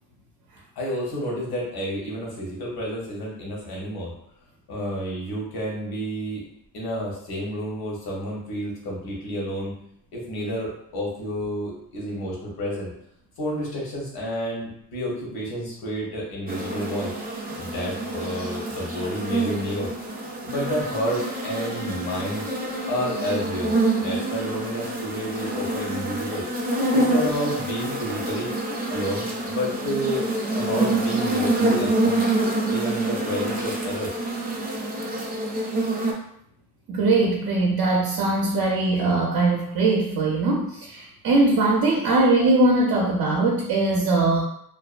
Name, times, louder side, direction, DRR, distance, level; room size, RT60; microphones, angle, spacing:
voice 1, 0.8-4.1 4.7-6.5 6.7-9.7 10.1-12.9 13.4-17.2 17.6-19.9 20.4-22.4 22.9-23.7 24.0-26.4 26.9-28.5 28.9-30.3 30.5-32.2 32.7-34.1, equal, 80° left, -3 dB, 1.0 m, -30 dB
sound 1, 16.5-36.1, right 2 dB, 25° right, 0.5 m, -26 dB
voice 2, 36.9-44.4, right 2 dB, 70° right, -2 dB, 0.6 m, -21 dB
2.6 x 2.2 x 2.4 m, 0.72 s
cardioid pair, 110°, 37 cm